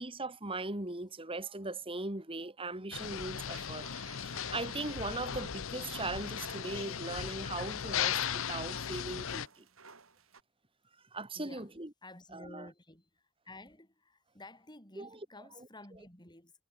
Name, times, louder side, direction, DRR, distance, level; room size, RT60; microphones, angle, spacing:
voice 1, 0.0-3.9 4.2-8.2 8.5-9.6 11.1-11.9 12.3-12.7 15.0-15.1, right 2 dB, 25° right, 2.7 m, -39 dB
sound 1, 2.9-9.5, left 8 dB, 70° left, 0.7 m, -37 dB
sound 2, 3.5-10.4, right 5 dB, 75° right, 6.0 m, -55 dB
voice 2, 11.3-11.7 12.0-16.5, left 2 dB, 20° left, 7.9 m, -52 dB
head